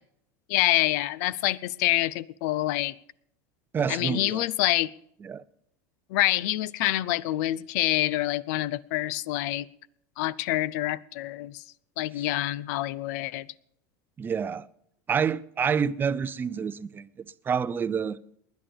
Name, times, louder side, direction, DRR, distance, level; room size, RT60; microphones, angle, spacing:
voice 1, 0.5-2.9 3.9-4.9 6.1-9.7 10.2-11.6 12.0-13.5, left 16 dB, 70° left, 0.6 m, -26 dB
voice 2, 3.7-4.4 5.2-5.4 14.2-14.7 15.1-18.2, right 6 dB, 20° right, 0.5 m, -28 dB
20.0 x 10.5 x 5.2 m
supercardioid pair, 125°, 10 cm